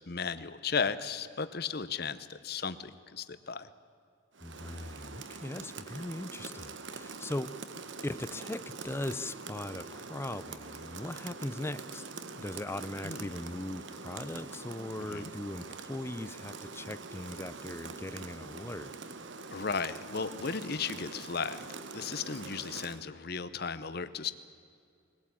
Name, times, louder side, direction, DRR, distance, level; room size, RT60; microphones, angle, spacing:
voice 1, 0.1-3.7 13.0-13.3 15.1-15.3 19.5-21.7 21.9-24.3, left 5 dB, 50° left, 13 dB, 0.8 m, -35 dB
Rain, 4.3-23.1, right 4 dB, 60° right, 1.1 m, -44 dB
voice 2, 4.4-7.5 8.0-19.0, left 1 dB, 10° left, 15 dB, 0.4 m, -39 dB
21.5 x 16.5 x 8.7 m, 2.4 s
head